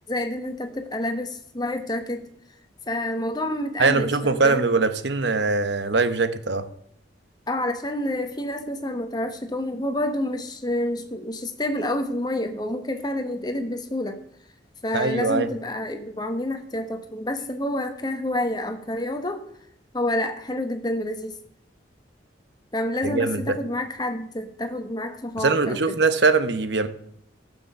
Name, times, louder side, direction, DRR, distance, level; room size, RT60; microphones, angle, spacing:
voice 1, 0.1-2.3 2.9-4.6 7.5-14.2 14.8-19.4 19.9-21.4 22.7-26.0, left 1 dB, 20° left, 6 dB, 1.2 m, -28 dB
voice 2, 3.8-6.7 14.9-15.5 23.0-23.6 25.4-26.9, right 3 dB, 65° right, 11 dB, 1.0 m, -22 dB
13.5 x 6.9 x 6.8 m, 0.70 s
head